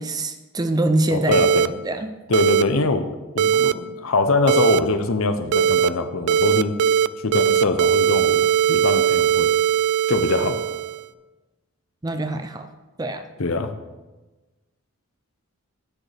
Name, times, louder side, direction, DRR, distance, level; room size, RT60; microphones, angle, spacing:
voice 1, 0.0-2.1 12.0-12.7 13.0-13.2, right 2 dB, 15° right, 8 dB, 0.4 m, -24 dB
voice 2, 1.1-1.7 2.3-3.0 3.3-6.7 7.2-9.5 10.1-10.6 13.4-13.7, left 3 dB, 70° left, 9 dB, 0.7 m, -23 dB
sound 1, 1.3-1.7 2.3-2.6 3.4-3.7 4.5-4.8 5.5-5.9 6.3-7.1 7.3-11.1, right 9 dB, 90° right, 0.3 m, -19 dB
10.0 x 8.9 x 3.4 m, 1.2 s
head